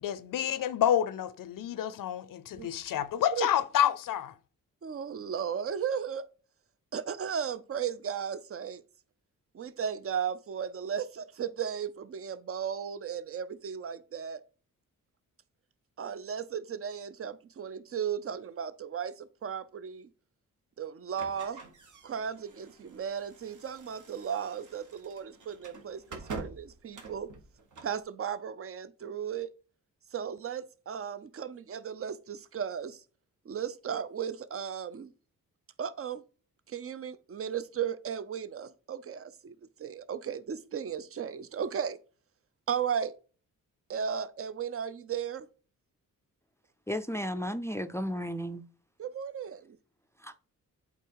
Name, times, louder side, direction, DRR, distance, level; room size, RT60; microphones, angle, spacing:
voice 1, 0.0-4.3, left 10 dB, 75° left, 0.6 m, -29 dB
voice 2, 4.8-6.3 6.9-8.8 9.5-14.4 16.0-20.1 20.8-21.6 22.0-27.3 27.8-29.5 30.1-33.0 33.4-35.1 35.8-36.2 36.7-39.5 39.8-42.0 42.7-43.1 43.9-45.5 49.0-49.8, right 8 dB, 45° right, 0.6 m, -35 dB
sound 1, 21.1-28.0, right 3 dB, 65° right, 1.6 m, -47 dB
voice 3, 46.9-48.6 50.2-50.4, equal, 10° left, 0.4 m, -34 dB
8.2 x 3.5 x 4.7 m
cardioid pair, 100°, 33 cm